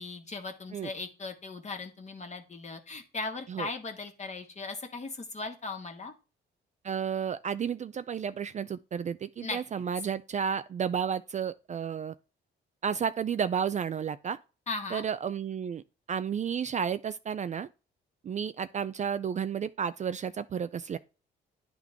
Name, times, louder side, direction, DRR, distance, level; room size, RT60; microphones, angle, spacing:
voice 1, 0.0-6.1 9.4-9.6 14.7-15.0, left 3 dB, 35° left, 1.7 m, -38 dB
voice 2, 6.8-12.1 12.8-14.4 14.9-15.8 16.1-17.7 18.2-21.0, right 7 dB, 35° right, 0.4 m, -32 dB
10.5 x 3.7 x 3.5 m
cardioid pair, 90°, 20 cm